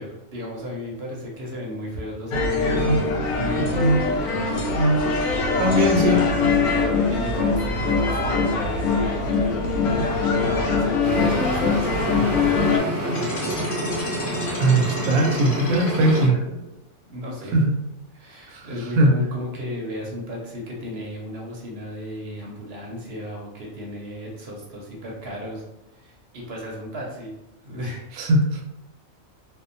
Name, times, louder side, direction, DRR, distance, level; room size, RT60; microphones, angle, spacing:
voice 1, 0.0-4.1 5.6-6.3 7.1-10.1 10.5-13.7 17.0-17.6 18.1-25.6 25.9-27.3 27.6-28.0, left 1 dB, 55° right, -2 dB, 0.7 m, -34 dB
sound 1, 2.3-12.8, left 3 dB, 85° left, 1.1 m, -22 dB
voice 2, 5.6-6.2 14.6-16.3 17.5-17.6 18.5-18.7 19.0-19.1 28.2-28.6, right 1 dB, 80° right, 2 dB, 1.0 m, -19 dB
sound 2, 11.0-16.3, right 1 dB, 15° right, 0.6 m, -28 dB
sound 3, 13.1-16.7, left 2 dB, 65° left, 0.9 m, -35 dB
2.7 x 2.1 x 2.5 m, 0.92 s
omnidirectional pair, 1.5 m